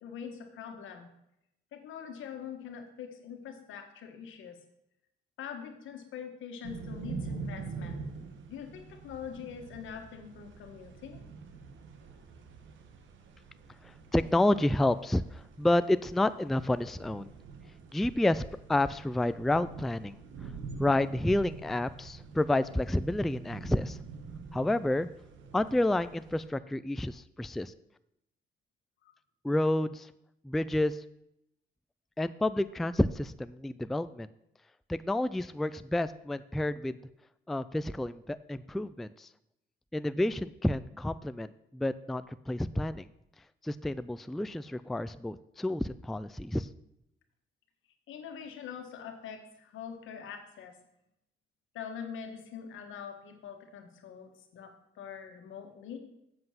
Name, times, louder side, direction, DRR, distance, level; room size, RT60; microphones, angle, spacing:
voice 1, 0.0-1.1 1.7-4.6 5.4-8.0 8.5-11.2 29.0-29.1 48.1-50.7 51.7-56.0, left 7 dB, 80° left, 5 dB, 1.6 m, -43 dB
sound 1, 6.6-26.5, right 5 dB, 75° right, 1.3 m, -45 dB
voice 2, 13.8-17.3 17.9-18.4 18.7-20.2 20.8-24.0 24.5-25.1 25.5-27.7 29.4-30.1 30.4-31.0 32.2-34.3 34.9-37.0 37.5-39.3 39.9-43.1 43.6-46.7, left 1 dB, ahead, 13 dB, 0.3 m, -29 dB
7.8 x 7.6 x 5.8 m, 0.81 s
cardioid pair, 90°, 20 cm